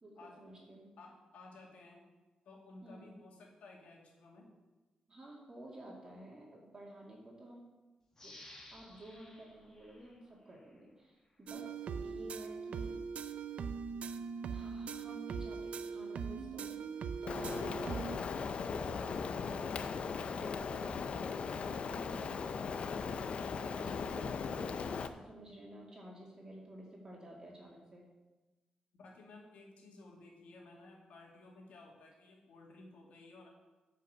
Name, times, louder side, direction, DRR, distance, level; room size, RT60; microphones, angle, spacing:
voice 1, 0.0-1.0 2.8-3.1 5.1-7.6 8.2-13.3 14.5-16.8 17.2-17.6 18.4-23.0 23.5-28.1, right 1 dB, 30° right, -3 dB, 2.4 m, -52 dB
voice 2, 1.0-2.0 2.4-4.5 28.9-33.5, left 2 dB, 80° left, 0 dB, 2.3 m, -55 dB
sound 1, 8.1-10.8 11.3-11.4, left 1 dB, 25° left, 2.2 m, -57 dB
sound 2, 11.5-18.2, right 6 dB, 70° right, 0.5 m, -41 dB
Rain, 17.3-25.1, left 5 dB, 60° left, 0.6 m, -38 dB
9.5 x 5.6 x 6.7 m, 1.2 s
cardioid pair, 100°, 2 cm